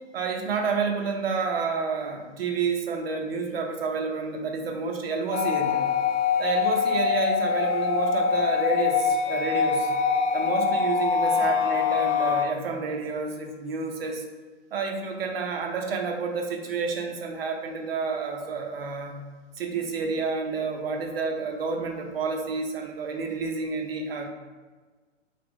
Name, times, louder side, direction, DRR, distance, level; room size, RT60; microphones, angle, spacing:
voice 1, 0.1-5.8 6.4-9.9 10.3-14.2 14.7-19.1 19.6-24.3, right 5 dB, 50° right, 3 dB, 0.6 m, -29 dB
sound 1, 5.3-12.5, left 6 dB, 70° left, 0.5 m, -24 dB
2.8 x 2.5 x 3.1 m, 1.4 s
figure-of-eight pair, 120°, 38 cm